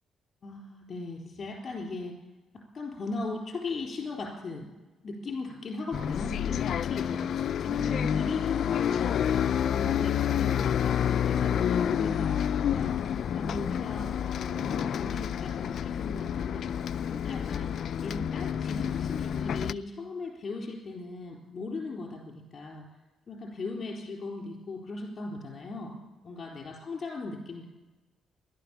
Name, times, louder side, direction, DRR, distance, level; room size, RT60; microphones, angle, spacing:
voice 1, 0.4-2.2 2.7-4.7 5.0-7.2 7.6-13.0 13.3-16.7 17.1-17.7 18.0-22.8 23.3-25.9 26.2-27.7, left 3 dB, 40° left, 0 dB, 4.1 m, -38 dB
Bus, 5.9-19.7, left 9 dB, 65° left, 0.4 m, -29 dB
16.5 x 12.0 x 7.2 m, 1.1 s
cardioid pair, 90°, 0 cm